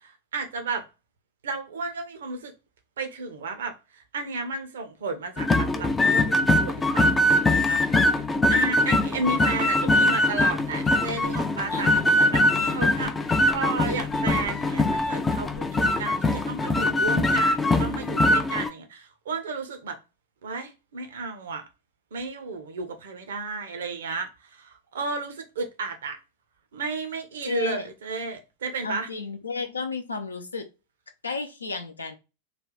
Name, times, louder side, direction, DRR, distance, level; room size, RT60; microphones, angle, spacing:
voice 1, 0.0-0.8 1.4-2.5 3.0-20.0 20.4-21.6 22.1-26.2 26.7-29.1, right 4 dB, 60° right, 0.7 m, -33 dB
sound 1, 5.4-18.7, left 1 dB, 15° left, 0.4 m, -22 dB
voice 2, 11.7-13.1 27.4-27.9 28.8-30.7 31.2-32.1, left 4 dB, 75° left, 0.6 m, -33 dB
3.3 x 2.4 x 3.8 m
figure-of-eight pair, 90°, 0 cm